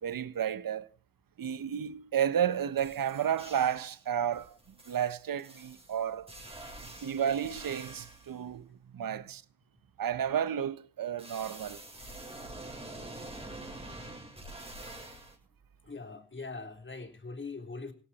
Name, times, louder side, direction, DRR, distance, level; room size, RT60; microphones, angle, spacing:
voice 1, 0.0-0.9 1.4-4.6 4.9-6.3 6.8-9.4 10.0-11.8, right 9 dB, 55° right, 1.3 m, -32 dB
sound 1, 2.4-2.5 2.8-4.0 4.3-8.4 11.2-15.4, right 1 dB, 15° right, 7.2 m, -46 dB
voice 2, 6.6-7.1 14.6-14.7 15.8-17.9, left 3 dB, 25° left, 3.8 m, -43 dB
17.0 x 15.0 x 4.4 m
cardioid pair, 70°, 41 cm